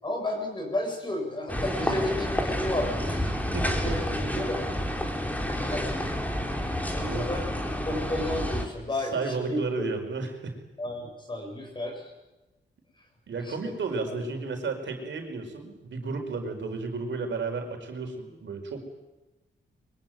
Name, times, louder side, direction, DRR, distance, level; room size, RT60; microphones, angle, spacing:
voice 1, 0.0-4.7 5.6-6.1 6.9-7.5 7.8-9.9 10.8-12.1 13.4-13.5 14.1-14.2, left 1 dB, 25° left, 2 dB, 7.0 m, -33 dB
sound 1, 1.5-8.6, equal, 10° left, 3.5 m, -29 dB
voice 2, 9.0-10.6 13.3-18.8, right 4 dB, 65° right, 4 dB, 4.8 m, -33 dB
24.5 x 24.0 x 9.2 m, 1.0 s
wide cardioid pair, 170°, 20 cm